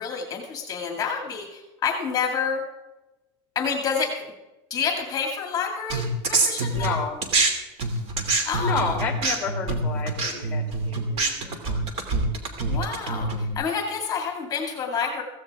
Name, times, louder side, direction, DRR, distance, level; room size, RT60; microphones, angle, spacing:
voice 1, 0.0-2.6 3.6-4.1 4.7-7.0 8.5-8.9 12.7-15.2, left 6 dB, 25° left, 2 dB, 2.1 m, -28 dB
sound 1, 5.9-7.5 7.8-13.5, right 3 dB, 45° right, 2.6 m, -25 dB
voice 2, 6.7-7.2 8.6-11.8, left 5 dB, 10° left, 3 dB, 2.3 m, -31 dB
15.5 x 15.5 x 3.5 m, 1.1 s
supercardioid pair, 155°, 14 cm